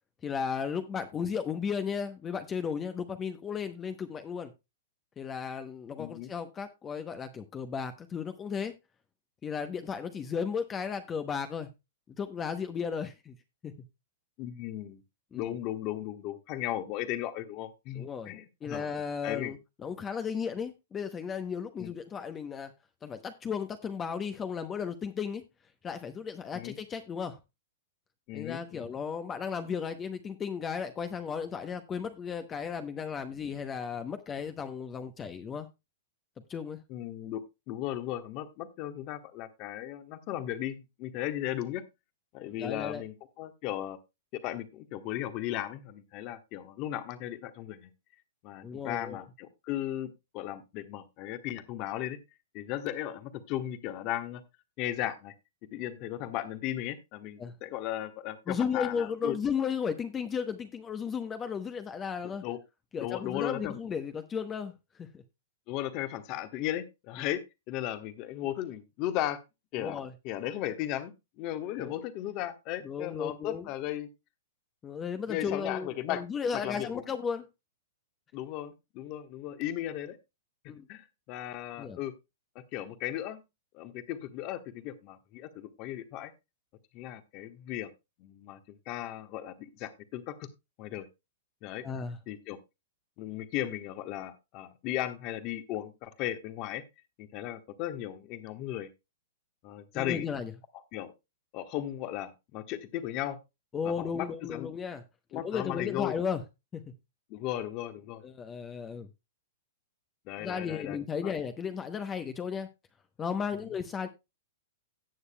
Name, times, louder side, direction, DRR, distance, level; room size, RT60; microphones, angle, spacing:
voice 1, 0.2-4.5 5.2-8.7 9.4-11.7 12.2-13.3 13.6-13.7 15.3-15.5 17.9-18.3 18.6-22.7 23.0-25.4 25.8-27.4 28.3-35.7 36.5-36.8 42.6-43.0 48.6-49.2 57.4-57.6 58.5-62.4 62.9-65.2 69.8-70.1 71.8-72.0 72.8-73.7 74.8-77.5 80.7-80.9 81.8-82.0 91.8-92.2 99.9-100.5 103.7-105.0 105.3-106.4 106.7-106.8 108.2-109.1 110.4-112.7 113.2-114.1, left 6 dB, 20° left, 0.8 m, -35 dB
voice 2, 6.0-6.3 14.4-15.0 15.3-18.9 19.2-19.5 21.8-21.9 26.5-26.8 28.3-28.9 36.9-41.8 42.3-44.0 44.3-47.9 48.4-52.2 52.5-54.4 54.8-55.3 55.7-59.4 62.4-62.6 63.0-63.7 65.7-69.4 69.7-74.1 75.3-76.2 76.5-77.0 78.3-80.2 80.9-82.1 82.5-83.4 83.7-86.3 86.9-87.9 88.2-90.5 90.8-91.1 91.6-91.9 92.3-92.6 93.2-96.8 97.2-98.9 99.6-100.3 100.9-101.1 101.5-103.4 103.8-104.7 105.3-106.1 107.3-108.2 110.3-111.0 111.2-111.3 113.5-113.7, left 13 dB, 40° left, 1.2 m, -36 dB
17.0 x 6.6 x 2.2 m
hypercardioid pair, 135°, 0 cm